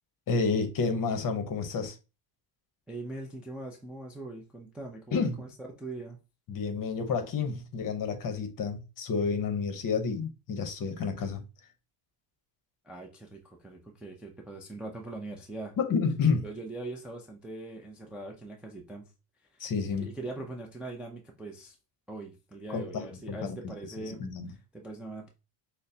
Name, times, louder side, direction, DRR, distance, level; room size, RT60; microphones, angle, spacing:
voice 1, 0.3-1.9 5.1-5.4 6.5-11.4 15.8-16.4 19.6-20.1 22.7-23.6 24.0-24.5, left 5 dB, 40° left, 0.9 m, -30 dB
voice 2, 2.9-6.2 12.8-15.7 16.4-19.1 20.0-21.8 22.1-25.3, right 2 dB, 5° right, 0.4 m, -41 dB
6.2 x 2.2 x 2.7 m
cardioid pair, 115°, 50 cm